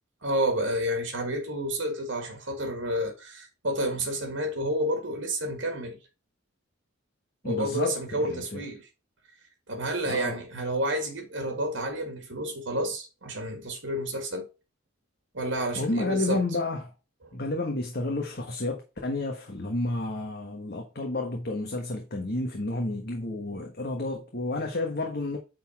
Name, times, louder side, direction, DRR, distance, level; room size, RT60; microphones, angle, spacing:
voice 1, 0.2-6.0 7.4-8.9 9.7-14.5 15.3-16.4, right 1 dB, 70° right, 1.8 m, -30 dB
voice 2, 7.4-8.6 10.0-10.4 15.8-16.9 17.3-25.4, left 2 dB, 50° left, 1.4 m, -31 dB
9.3 x 4.1 x 4.2 m
head